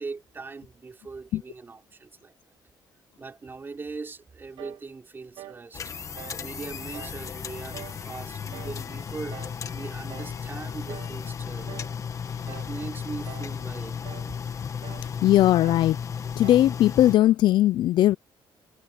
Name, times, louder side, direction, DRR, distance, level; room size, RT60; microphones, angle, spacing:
voice 1, 0.0-2.3 3.2-5.9 6.4-11.8 12.5-14.0, right 4 dB, 25° right, 3.9 m, -40 dB
sound 1, 4.6-4.9 5.4-5.6 6.2-6.4 6.9-7.2 7.7-8.0 8.5-8.8 9.3-9.6 10.1-10.4 10.9-11.2 11.7-12.0 12.5-12.8 13.2-13.6 14.0-14.3 14.8-15.1 15.6-15.9 16.4-16.7, right 14 dB, 75° right, 0.5 m, -44 dB
sound 2, 5.7-17.2, left 7 dB, 40° left, 1.4 m, -35 dB
voice 2, 15.2-16.0 16.4-18.2, left 13 dB, 65° left, 0.3 m, -19 dB
cardioid pair, 125°, 9 cm